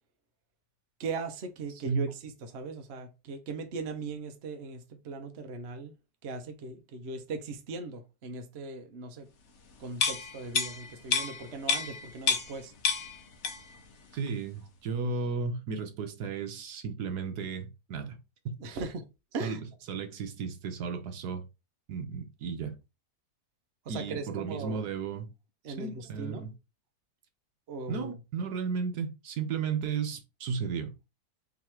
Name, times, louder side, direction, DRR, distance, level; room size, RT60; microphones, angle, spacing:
voice 1, 1.0-5.9 6.2-9.3 9.8-12.7 18.6-19.1 19.3-19.6 23.9-24.8 25.6-26.5 27.7-28.1, right 3 dB, 50° right, 0.8 m, -39 dB
sound 1, 9.9-12.6 12.8-13.8 14.1-14.3, left 5 dB, 55° left, 1.0 m, -30 dB
voice 2, 14.1-18.2 18.7-18.8 19.4-19.6 19.9-21.4 21.9-22.8 23.9-25.3 25.8-26.5 27.9-30.9, right 5 dB, 70° right, 1.4 m, -34 dB
3.7 x 3.1 x 4.3 m
omnidirectional pair, 1.8 m